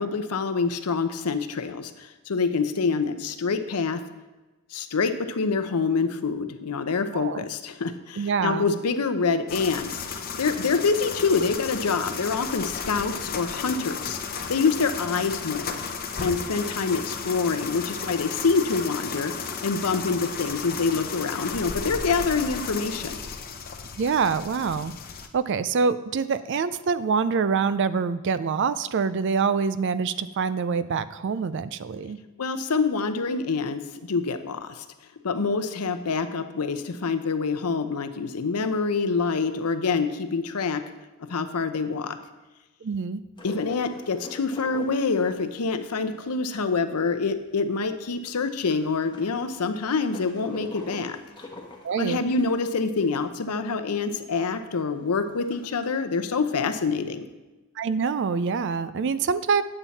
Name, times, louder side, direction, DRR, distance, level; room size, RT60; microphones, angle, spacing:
voice 1, 0.0-4.0 4.7-10.1 10.4-14.2 14.5-15.8 16.2-19.3 19.6-23.2 32.4-34.8 35.2-40.8 41.2-42.2 43.4-51.2 52.0-57.3, left 4 dB, 90° left, 10 dB, 0.7 m, -26 dB
voice 2, 7.1-7.4 8.2-8.6 24.0-24.9 25.3-32.2 42.8-43.2 51.8-52.2 57.8-59.6, right 5 dB, 55° right, 14 dB, 0.4 m, -25 dB
sound 1, 9.5-25.3, left 5 dB, 40° left, 0.7 m, -34 dB
sound 2, 43.4-47.4 47.8-47.9 48.0-53.4 53.8-53.9 54.1-54.2 54.7-56.0, left 2 dB, 20° left, 1.1 m, -44 dB
8.9 x 7.3 x 4.1 m, 1.1 s
head